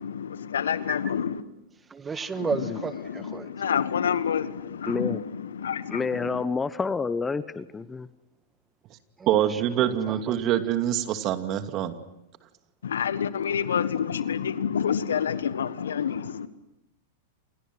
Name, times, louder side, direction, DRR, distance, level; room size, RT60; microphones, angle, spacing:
voice 1, 0.0-1.4 2.3-6.4 12.8-16.5, left 8 dB, 75° left, 1.4 m, -28 dB
voice 2, 1.9-2.9 3.3-3.5, right 5 dB, 20° right, 1.6 m, -30 dB
voice 3, 4.9-5.2 5.9-8.1, left 4 dB, 15° left, 1.0 m, -29 dB
voice 4, 9.3-11.9, right 11 dB, 40° right, 2.4 m, -25 dB
28.5 x 28.5 x 6.2 m
hypercardioid pair, 100°, 0 cm